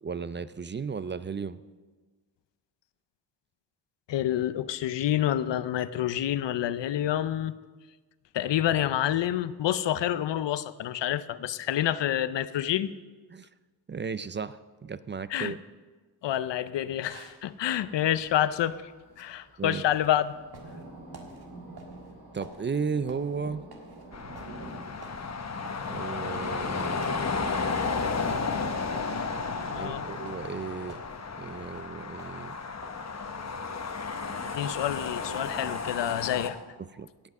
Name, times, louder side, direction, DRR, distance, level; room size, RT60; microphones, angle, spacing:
voice 1, 0.0-1.6 13.3-13.5 13.9-15.6 19.6-19.9 22.3-23.6 25.9-27.0 29.8-31.0 31.4-32.5 36.8-37.1, right 5 dB, 30° right, 15 dB, 0.4 m, -34 dB
voice 2, 4.1-7.5 8.3-12.9 15.3-15.6 16.2-18.8 19.2-20.3 29.7-30.1 34.4-36.6, left 11 dB, 85° left, 15 dB, 0.6 m, -28 dB
sound 1, 16.9-34.0, right 3 dB, 60° right, 1.9 m, -54 dB
Thunder, 17.7-29.0, right 2 dB, 85° right, 3.1 m, -49 dB
sound 2, 24.1-36.5, left 4 dB, 40° left, 1.0 m, -33 dB
17.0 x 5.9 x 6.5 m, 1.4 s
cardioid pair, 75°, 42 cm